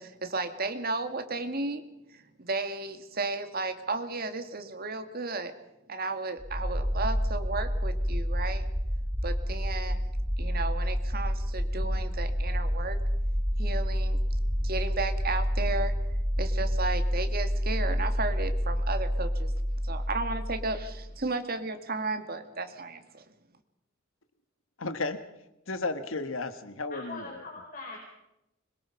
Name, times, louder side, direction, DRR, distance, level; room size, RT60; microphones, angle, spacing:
voice 1, 0.0-1.8 2.1-5.5 5.9-8.7 9.2-10.0 10.4-13.0 13.6-14.2 14.6-15.9 16.4-19.5 19.8-23.2, right 3 dB, 50° right, 7 dB, 2.0 m, -34 dB
sound 1, 6.4-21.2, equal, 10° right, 1.2 m, -29 dB
voice 2, 24.8-25.2 25.7-27.4, left 3 dB, 80° left, 10 dB, 1.5 m, -33 dB
voice 3, 26.9-28.0, left 3 dB, 45° left, 0 dB, 4.4 m, -41 dB
25.5 x 22.0 x 5.8 m, 0.88 s
head